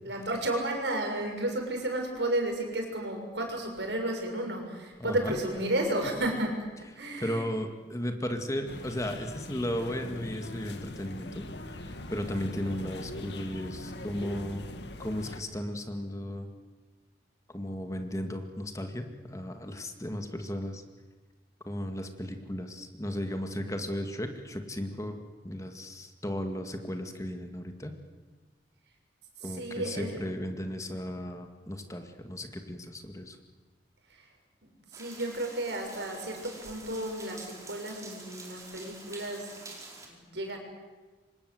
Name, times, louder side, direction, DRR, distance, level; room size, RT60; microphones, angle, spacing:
voice 1, 0.0-6.6 7.0-7.4 29.4-30.2 30.8-31.0 34.1-34.3 34.6-39.6 40.0-40.6, right 1 dB, 80° right, 3 dB, 6.8 m, -33 dB
voice 2, 5.0-5.3 7.2-14.7 15.0-16.5 17.5-20.8 21.7-25.2 25.4-27.9 29.4-33.4, equal, 20° left, 5 dB, 2.2 m, -35 dB
sound 1, 8.7-15.4, left 1 dB, 75° left, 2.0 m, -41 dB
sound 2, 34.9-40.1, right 3 dB, 20° right, 4.7 m, -47 dB
28.5 x 25.0 x 8.1 m, 1.3 s
head